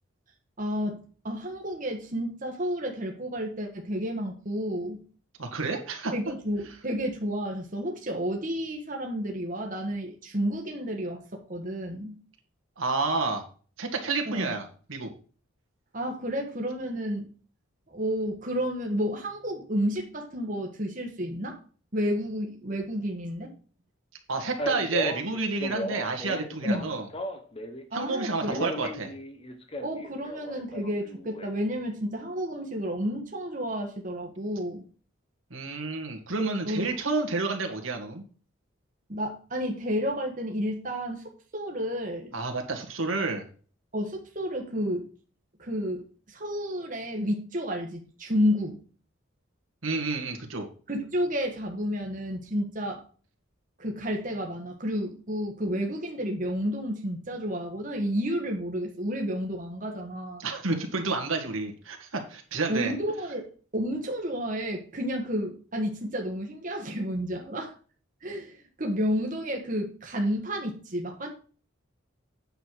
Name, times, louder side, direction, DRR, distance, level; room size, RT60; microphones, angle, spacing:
voice 1, 0.6-1.0 1.2-5.0 6.1-11.2 11.5-12.2 14.3-14.5 15.9-17.3 17.9-21.6 21.9-23.5 26.6-26.9 27.9-28.7 29.8-34.8 36.6-36.8 39.1-42.4 43.9-45.0 45.6-48.8 50.9-53.0 53.8-60.5 62.7-63.5 63.7-67.7 68.2-71.3, equal, 40° right, 1 dB, 1.5 m, -31 dB
voice 2, 5.4-6.1 6.7-6.8 12.8-13.4 13.8-15.1 24.3-27.1 27.9-29.1 35.5-38.2 42.3-43.4 49.8-50.7 60.4-62.9, right 3 dB, 80° right, 3 dB, 2.1 m, -30 dB
Male speech man speaking, 24.6-27.8 28.1-31.5, left 1 dB, 30° left, 1.2 m, -35 dB
9.1 x 6.9 x 4.7 m, 0.40 s
head